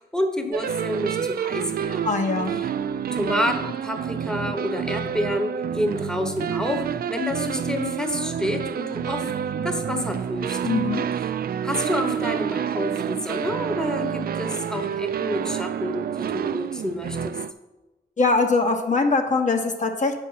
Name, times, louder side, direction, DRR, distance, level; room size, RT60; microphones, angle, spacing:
voice 1, 0.0-2.2 2.6-2.7 3.1-9.3 9.6-10.6 11.2-11.3 11.6-17.4, left 1 dB, 5° left, 5 dB, 1.0 m, -29 dB
sound 1, 0.5-17.5, right 8 dB, 60° right, 0.4 m, -28 dB
voice 2, 2.0-2.5 10.6-11.1 18.2-20.1, left 3 dB, 45° left, 4 dB, 1.0 m, -22 dB
6.3 x 5.4 x 5.6 m, 1.1 s
cardioid pair, 60°, 18 cm